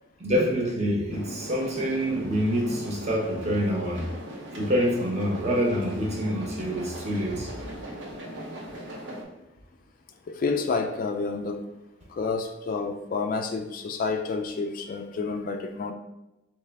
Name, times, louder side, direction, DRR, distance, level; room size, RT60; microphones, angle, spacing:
voice 1, 0.2-4.1 4.5-7.5, equal, 35° right, -2 dB, 0.8 m, -26 dB
sound 1, 1.1-9.2, right 1 dB, 75° right, 0.8 m, -39 dB
voice 2, 10.3-11.6 12.1-15.9, left 4 dB, 45° left, 5 dB, 0.3 m, -29 dB
3.3 x 3.0 x 3.4 m, 0.95 s
head